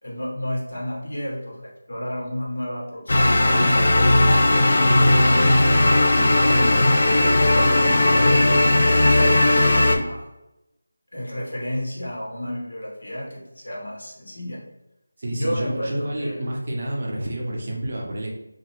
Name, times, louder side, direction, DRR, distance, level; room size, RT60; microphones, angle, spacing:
voice 1, 0.0-4.4 4.8-5.9 6.4-6.8 7.4-10.3 11.1-14.6 15.3-16.4, equal, 70° left, -2 dB, 1.1 m, -31 dB
sound 1, 3.1-10.0, left 1 dB, 40° left, 0.3 m, -17 dB
voice 2, 15.2-18.3, right 1 dB, 35° right, -1 dB, 0.5 m, -29 dB
2.9 x 2.3 x 3.0 m, 0.92 s
figure-of-eight pair, 175°, 0 cm